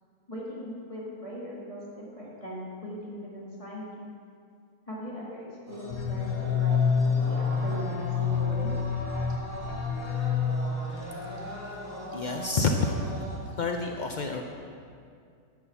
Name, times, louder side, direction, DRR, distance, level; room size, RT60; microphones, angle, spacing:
voice 1, 0.3-3.9 4.9-8.7, equal, 20° left, -6 dB, 1.8 m, -39 dB
sound 1, 5.7-13.4, equal, 10° right, 2.0 m, -39 dB
sound 2, 5.9-11.0, left 6 dB, 65° left, 0.8 m, -28 dB
voice 2, 12.1-13.3 13.6-14.4, left 3 dB, 85° left, 3 dB, 0.4 m, -29 dB
11.0 x 6.2 x 7.0 m, 2.3 s
omnidirectional pair, 1.7 m